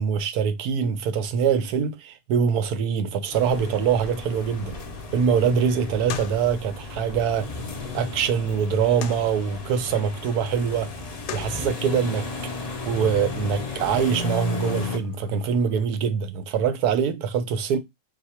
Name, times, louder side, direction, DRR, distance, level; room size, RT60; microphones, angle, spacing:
voice 1, 0.0-4.8 5.1-7.5 7.9-10.9 11.3-12.2 12.9-17.8, right 7 dB, 70° right, 1.1 m, -24 dB
sound 1, 3.3-15.0, left 3 dB, 35° left, 0.6 m, -35 dB
sound 2, 3.9-15.9, left 4 dB, 75° left, 1.2 m, -41 dB
4.1 x 2.5 x 4.2 m
omnidirectional pair, 1.9 m